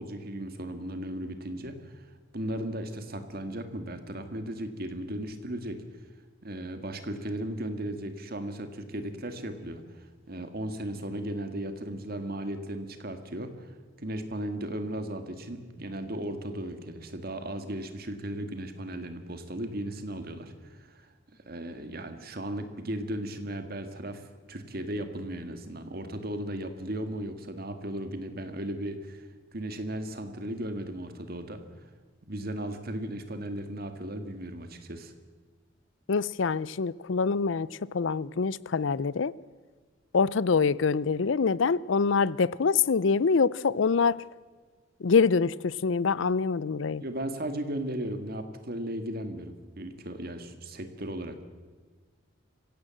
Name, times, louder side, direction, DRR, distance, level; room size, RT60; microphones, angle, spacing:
voice 1, 0.0-2.1 2.3-5.8 6.4-21.1 21.5-29.3 29.5-31.6 32.3-35.1 47.0-51.4, right 1 dB, 50° right, 8 dB, 2.0 m, -36 dB
voice 2, 36.1-39.3 40.1-44.3 45.0-47.0, left 5 dB, 80° left, 21 dB, 0.5 m, -25 dB
24.0 x 16.5 x 7.7 m, 1.5 s
head